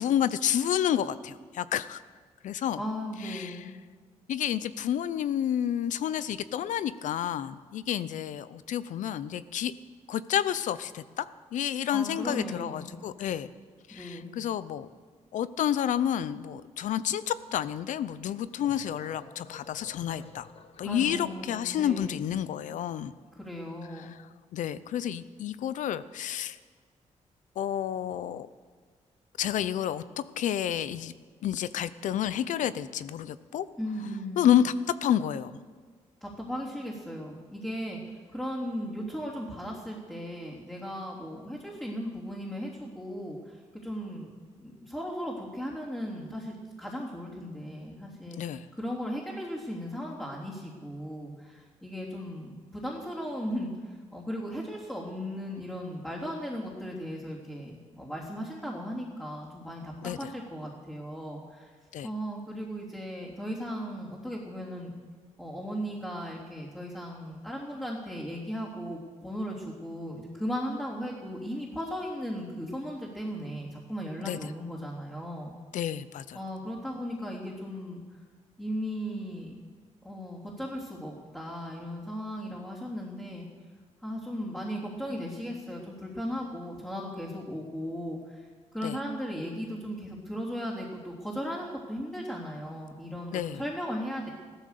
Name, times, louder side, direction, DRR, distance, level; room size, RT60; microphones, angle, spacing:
voice 1, 0.0-2.0 2.4-2.8 3.2-3.6 4.3-9.7 10.1-11.3 11.5-13.5 13.9-14.9 15.3-20.5 20.8-23.1 24.1-24.2 24.5-26.6 27.6-28.5 29.4-31.1 31.4-33.7 34.4-35.6 48.4-48.7 60.0-60.3 61.9-62.1 74.2-74.5 75.7-76.4 88.8-89.0 93.3-93.6, left 10 dB, 85° left, 15 dB, 0.6 m, -30 dB
voice 2, 2.8-3.7 11.9-13.0 13.9-14.4 20.8-22.3 23.3-24.1 33.8-34.5 36.2-44.3 44.6-59.9 60.2-61.7 62.0-64.9 65.4-75.5 76.3-78.0 78.6-79.5 80.0-83.5 84.0-88.5 88.7-94.3, equal, 5° left, -7 dB, 3.4 m, -37 dB
sound 1, 18.3-22.2, left 5 dB, 50° left, 1.1 m, -52 dB
15.5 x 13.5 x 6.8 m, 1.5 s
cardioid pair, 100°, 13 cm